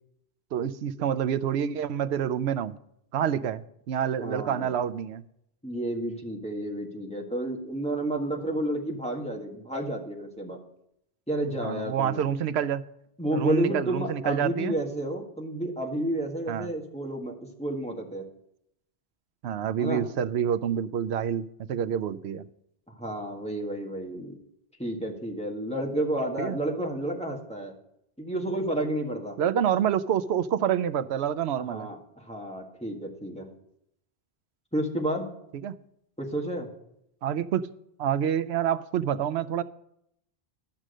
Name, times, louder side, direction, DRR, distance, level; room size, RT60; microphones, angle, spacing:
voice 1, 0.5-2.7 3.1-5.2 11.6-12.8 13.3-14.8 16.5-16.7 19.4-22.5 26.4-26.6 29.4-31.9 35.6-35.7 37.2-37.7 38.0-39.6, right 9 dB, 85° right, 13 dB, 0.9 m, -27 dB
voice 2, 4.2-4.7 5.6-10.6 11.3-12.2 13.2-18.2 19.8-20.0 22.9-24.4 24.8-27.7 28.2-29.4 31.5-33.5 34.7-35.3 36.2-36.7, right 1 dB, 5° left, 0 dB, 1.7 m, -31 dB
12.0 x 6.2 x 6.5 m, 0.76 s
omnidirectional pair, 1.1 m